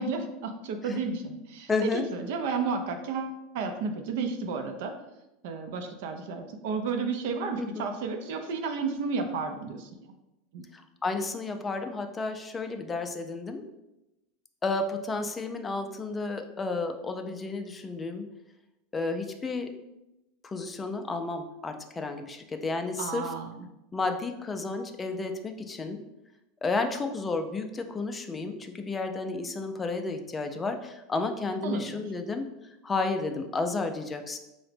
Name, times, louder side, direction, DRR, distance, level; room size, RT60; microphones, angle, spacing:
voice 1, 0.0-4.9 5.4-10.1 10.5-10.6 23.0-23.7 31.6-32.1, right 4 dB, 70° right, 5 dB, 0.4 m, -32 dB
voice 2, 1.7-2.0 7.6-7.9 10.7-13.6 14.6-18.3 18.9-19.7 20.4-23.3 23.9-26.0 26.6-32.5 32.8-34.4, left 3 dB, 15° left, 6 dB, 0.3 m, -32 dB
4.7 x 2.1 x 3.3 m, 0.95 s
supercardioid pair, 140°, 0 cm